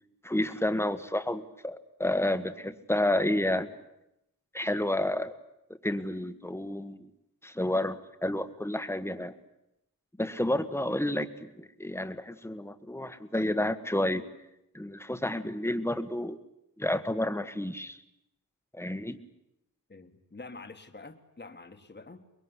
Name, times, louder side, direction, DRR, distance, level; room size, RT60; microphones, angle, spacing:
voice 1, 0.2-3.7 4.5-5.3 5.8-7.1 7.4-9.3 10.2-14.2 14.7-16.4 16.8-18.0 18.7-19.2, left 1 dB, 5° left, 11 dB, 1.5 m, -30 dB
voice 2, 19.9-22.2, left 3 dB, 30° left, 6 dB, 1.8 m, -47 dB
24.0 x 22.0 x 9.8 m, 0.84 s
wide cardioid pair, 75°, 36 cm